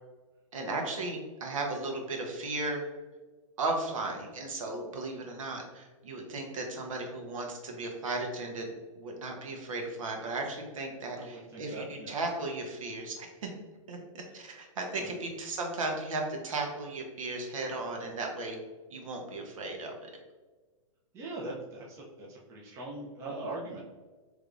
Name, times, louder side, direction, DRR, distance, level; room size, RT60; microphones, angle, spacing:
voice 1, 0.5-2.8 3.6-13.5 13.9-18.6 18.9-20.1, right 2 dB, 70° right, 1 dB, 0.9 m, -36 dB
voice 2, 11.2-12.2 14.9-15.2 21.1-23.8, right 2 dB, 15° right, -4 dB, 0.6 m, -41 dB
3.4 x 3.2 x 2.5 m, 1.3 s
hypercardioid pair, 155°, 18 cm